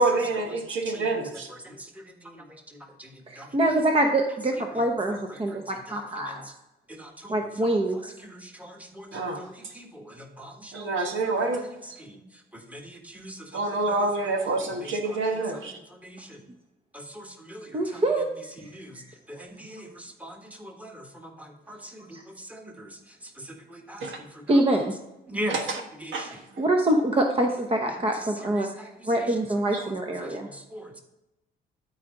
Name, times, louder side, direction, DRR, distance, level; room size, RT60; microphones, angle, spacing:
voice 1, 0.0-1.5 9.1-9.4 10.7-11.6 13.5-15.7 24.0-24.2 25.5-25.8 26.1-26.3 29.7-29.8, right 2 dB, 75° right, 4 dB, 1.3 m, -27 dB
voice 2, 0.9-3.5 5.3-6.5 6.9-7.3 7.7-10.9 11.2-11.7 12.0-12.2 12.5-14.6 14.8-15.2 15.5-16.5 16.9-18.0 18.6-19.0 19.3-24.6 25.3-25.6 26.0-26.4 27.9-29.3 29.8-29.9 30.2-31.0, equal, 5° right, 3 dB, 1.5 m, -42 dB
voice 3, 3.3-6.4 7.3-8.1 17.7-18.3 18.6-18.7 22.1-22.2 24.5-24.9 26.6-28.7 29.1-30.5, right 1 dB, 30° right, 3 dB, 0.9 m, -25 dB
12.5 x 4.8 x 3.8 m, 0.95 s
cardioid pair, 90°, 20 cm